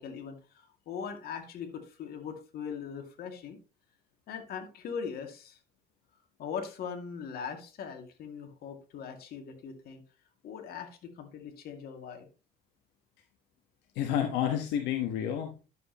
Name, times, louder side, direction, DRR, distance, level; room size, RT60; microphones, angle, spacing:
voice 1, 0.0-3.6 4.3-5.6 6.4-10.0 10.4-12.3, left 6 dB, 65° left, 4 dB, 2.3 m, -40 dB
voice 2, 13.9-15.7, left 10 dB, 90° left, 4 dB, 1.3 m, -30 dB
11.0 x 7.5 x 3.0 m, 0.32 s
cardioid pair, 110°, 17 cm